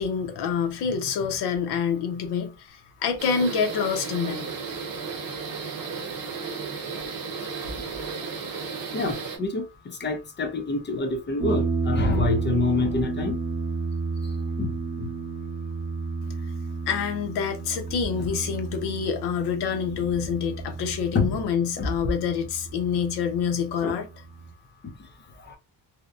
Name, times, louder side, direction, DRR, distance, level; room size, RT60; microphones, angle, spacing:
voice 1, 0.0-4.5 16.4-16.5 16.9-24.2, left 6 dB, 65° left, 0.7 m, -27 dB
sound 1, 3.2-9.4, right 5 dB, 50° right, 1.0 m, -34 dB
voice 2, 8.9-9.6 10.0-13.4 14.6-14.7 15.0-15.1 21.1-21.4 21.8-21.9 23.8-24.0, left 3 dB, 25° left, 0.4 m, -26 dB
sound 2, 11.4-24.5, right 4 dB, 15° right, 0.7 m, -32 dB
2.7 x 2.1 x 2.4 m
cardioid pair, 145°, 44 cm